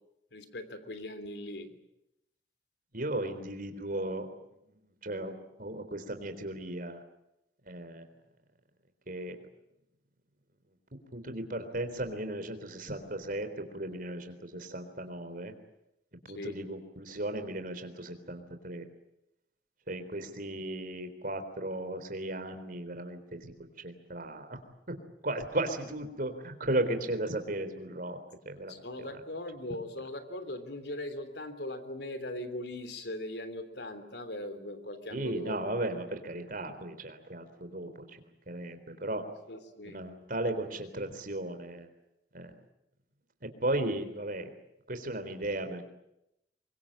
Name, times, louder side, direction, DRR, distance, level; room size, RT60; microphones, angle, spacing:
voice 1, 0.3-1.7 16.3-16.6 28.7-35.6 39.5-40.0, left 1 dB, 70° left, 10 dB, 3.3 m, -40 dB
voice 2, 2.9-4.3 4.7-7.0 7.7-8.0 9.1-9.4 11.1-15.5 16.3-18.8 19.9-24.6 24.9-25.0 25.2-28.2 28.5-28.7 35.1-38.2 38.5-39.2 39.9-41.9 42.3-42.5 43.4-44.5 44.9-45.8, right 1 dB, 55° right, 8 dB, 3.8 m, -36 dB
24.5 x 23.0 x 8.8 m, 0.84 s
head